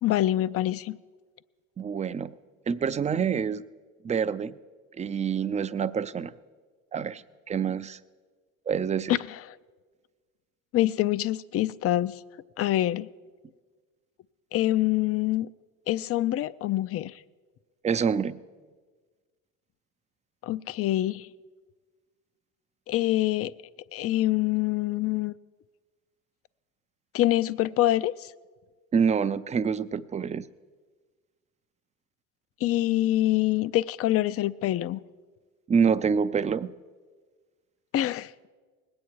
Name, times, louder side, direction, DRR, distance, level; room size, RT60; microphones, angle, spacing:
voice 1, 0.0-1.0 9.1-9.4 10.7-12.2 12.6-13.1 14.5-15.5 15.9-17.1 20.4-21.3 22.9-23.5 23.9-25.3 27.1-28.3 32.6-35.0 37.9-38.3, left 14 dB, 35° left, 0.4 m, -25 dB
voice 2, 1.8-2.3 2.7-3.6 4.0-4.5 5.0-6.3 6.9-8.0 8.7-9.2 17.8-18.4 28.9-30.4 35.7-36.7, right 6 dB, 15° right, 0.4 m, -26 dB
20.5 x 8.7 x 4.7 m
hypercardioid pair, 75°, 41 cm